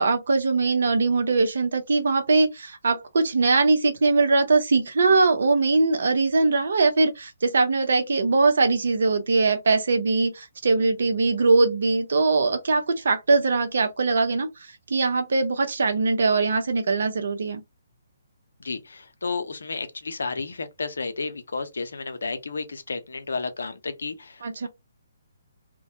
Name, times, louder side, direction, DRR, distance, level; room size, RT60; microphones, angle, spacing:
voice 1, 0.0-14.5 14.9-17.6 24.4-24.7, right 3 dB, 65° right, 0.6 m, -21 dB
voice 2, 18.6-24.7, left 4 dB, 75° left, 0.5 m, -32 dB
2.2 x 2.1 x 2.7 m
figure-of-eight pair, 140°, 0 cm